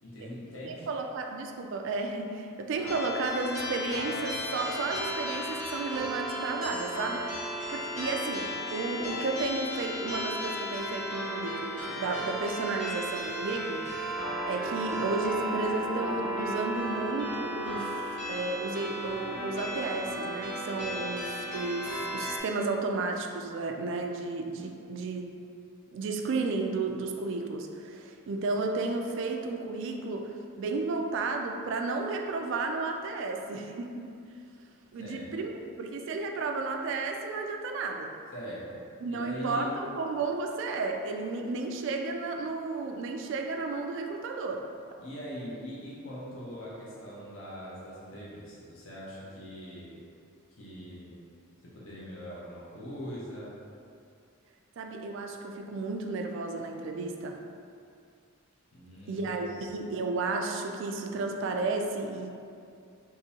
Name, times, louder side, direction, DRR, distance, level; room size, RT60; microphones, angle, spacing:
voice 1, 0.0-0.9 35.0-35.5 38.3-39.7 45.0-50.0 50.5-51.3 51.6-53.5 58.7-59.3 59.8-59.9, equal, 65° left, -7 dB, 0.7 m, -42 dB
voice 2, 0.6-7.4 7.7-14.1 14.4-18.0 18.3-25.3 25.9-34.1 34.9-35.5 35.8-38.1 39.0-44.6 54.8-57.4 59.1-62.3, right 3 dB, 60° right, 4 dB, 0.3 m, -33 dB
sound 1, 2.8-22.4, equal, 35° left, 1.1 m, -35 dB
3.7 x 2.6 x 2.8 m, 2.5 s
head